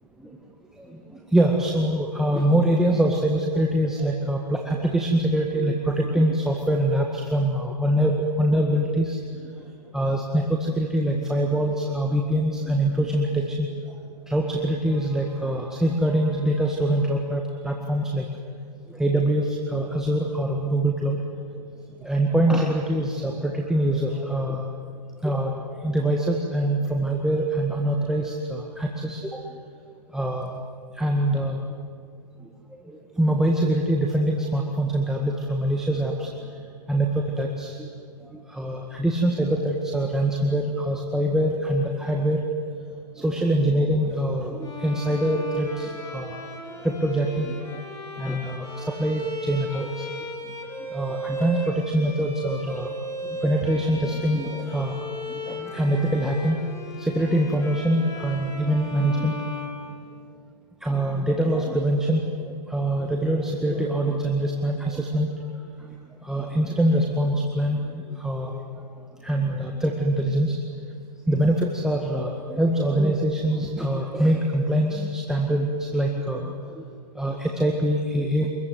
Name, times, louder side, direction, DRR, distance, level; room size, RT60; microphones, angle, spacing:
voice 1, 1.3-9.2 9.9-13.7 14.3-18.3 18.9-21.2 22.0-24.6 25.2-29.3 30.1-30.5 31.0-31.6 32.9-36.3 36.9-37.1 37.4-37.9 38.5-42.5 43.2-46.4 46.8-47.6 48.2-49.9 50.9-52.9 53.2-54.9 55.4-56.6 57.0-59.5 60.8-65.3 66.2-68.6 69.2-70.6 71.3-76.8 77.2-78.5, right 1 dB, ahead, -1 dB, 1.9 m, -24 dB
Bowed string instrument, 44.6-60.5, equal, 15° left, 3.9 m, -36 dB
27.0 x 21.5 x 9.5 m, 2.1 s
hypercardioid pair, 140°, 21 cm